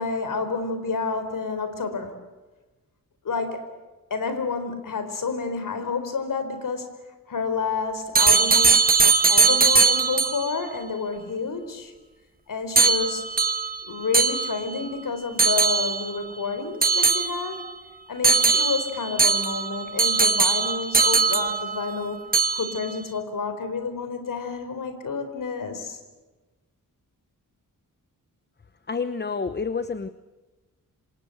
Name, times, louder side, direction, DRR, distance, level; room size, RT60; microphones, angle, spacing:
voice 1, 0.0-2.2 3.2-3.6 4.1-7.0 7.3-8.9 9.3-11.9 12.5-13.3 13.8-17.6 18.1-22.3 22.5-26.0, left 4 dB, 70° left, 9 dB, 4.3 m, -29 dB
School Clock Ringing, 8.1-10.5 12.8-14.9 15.4-16.2 16.8-17.7 18.2-22.0 22.3-22.9, right 4 dB, 25° right, 1.4 m, -20 dB
voice 2, 28.9-30.1, left 5 dB, 30° left, 12 dB, 0.9 m, -28 dB
27.0 x 26.0 x 7.8 m, 1.2 s
wide cardioid pair, 125°, 33 cm